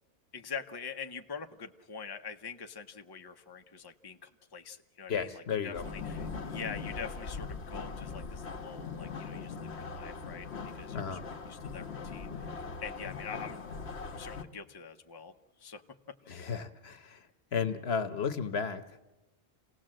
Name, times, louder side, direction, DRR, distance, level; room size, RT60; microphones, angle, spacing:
voice 1, 0.3-10.5 10.7-11.2 11.5-13.7 14.2-16.5, left 6 dB, 25° left, 5 dB, 0.8 m, -44 dB
voice 2, 5.1-5.8 10.9-11.2 16.3-19.0, left 6 dB, 70° left, 10 dB, 1.3 m, -34 dB
sound 1, 5.7-14.4, left 4 dB, 90° left, 1.3 m, -40 dB
27.5 x 18.0 x 7.6 m, 1.1 s
omnidirectional pair, 1.1 m